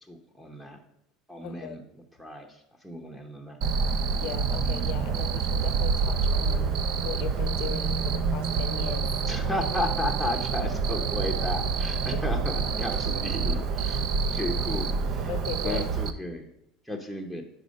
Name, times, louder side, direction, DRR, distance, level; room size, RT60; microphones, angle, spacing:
voice 1, 0.1-0.8 1.3-1.8 2.2-3.6 9.3-16.5 16.8-17.4, left 1 dB, 5° right, 3 dB, 0.8 m, -34 dB
voice 2, 1.4-1.8 4.1-9.1 10.6-10.7 12.1-12.2 15.3-15.9, left 9 dB, 65° left, 10 dB, 0.6 m, -38 dB
Cricket, 3.6-16.1, right 5 dB, 55° right, 0.4 m, -27 dB
4.9 x 4.3 x 5.2 m, 0.77 s
supercardioid pair, 100°, 0 cm